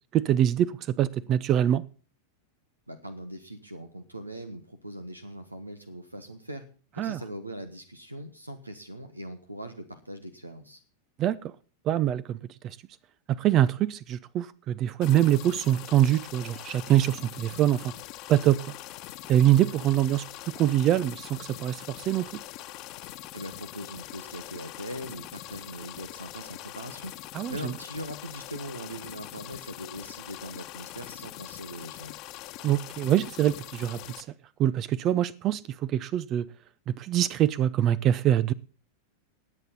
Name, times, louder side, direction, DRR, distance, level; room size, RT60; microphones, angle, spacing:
voice 1, 0.1-0.7 1.0-1.8 7.0-7.2 11.2-11.5 11.9-12.4 13.3-17.8 18.3-18.6 19.3-20.2 20.5-22.2 27.3-27.7 32.6-34.2 34.6-36.4 37.0-38.5, right 12 dB, 35° right, 0.6 m, -24 dB
voice 2, 2.9-6.6 6.9-10.8 23.0-27.1 27.5-32.2, equal, 85° right, 1.3 m, -41 dB
sound 1, 15.0-34.2, left 15 dB, 40° left, 1.2 m, -43 dB
19.5 x 8.1 x 4.1 m
figure-of-eight pair, 90°, 0 cm